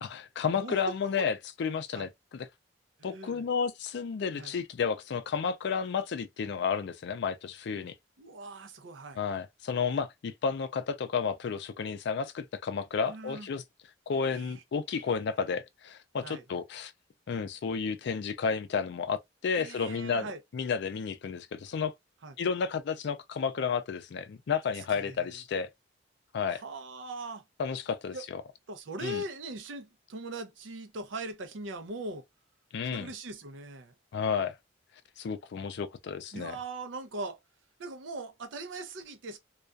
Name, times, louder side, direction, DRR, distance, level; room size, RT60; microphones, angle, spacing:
voice 1, 0.0-1.3 1.6-2.5 3.0-7.9 9.2-13.6 14.1-16.9 17.3-21.9 22.4-25.7 26.3-26.6 27.6-28.4 29.0-29.2 32.7-33.1 34.1-34.6 35.2-36.6, left 6 dB, 65° left, 0.4 m, -32 dB
voice 2, 0.5-1.1 1.9-2.1 3.0-3.4 4.3-4.5 8.2-9.2 13.1-13.5 14.3-14.6 16.2-16.4 19.5-20.4 22.2-22.4 24.8-25.3 26.5-27.4 28.1-28.3 28.7-32.3 32.9-33.9 36.3-37.4 37.8-39.4, right 2 dB, 75° right, 0.6 m, -40 dB
2.3 x 2.2 x 2.3 m
head